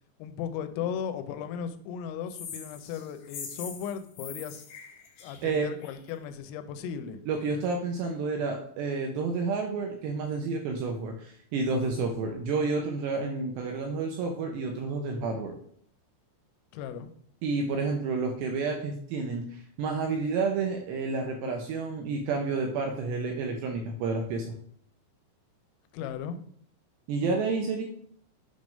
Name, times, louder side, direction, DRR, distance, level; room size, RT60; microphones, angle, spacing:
voice 1, 0.2-4.7 5.2-7.2 16.7-17.1 25.9-26.4, left 8 dB, 85° left, 9 dB, 3.3 m, -36 dB
sound 1, 2.3-6.1, left 6 dB, 65° left, 2.6 m, -43 dB
voice 2, 7.3-15.6 17.4-24.5 27.1-27.8, right 4 dB, 80° right, 2 dB, 2.5 m, -30 dB
9.2 x 3.5 x 5.2 m, 0.63 s
omnidirectional pair, 5.8 m